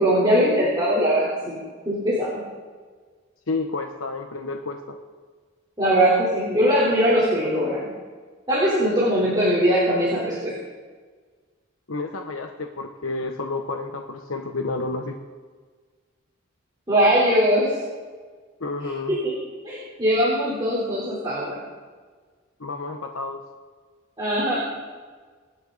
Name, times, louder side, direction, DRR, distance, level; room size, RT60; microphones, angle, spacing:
voice 1, 0.0-1.6 1.9-2.4 5.8-7.8 8.5-10.5 16.9-17.7 19.1-19.3 19.6-21.6 24.2-24.6, equal, 20° right, -8 dB, 4.1 m, -21 dB
voice 2, 3.5-5.0 11.9-15.2 18.6-19.2 22.6-23.4, left 3 dB, 85° left, 4 dB, 1.2 m, -30 dB
26.5 x 10.0 x 4.2 m, 1.5 s
head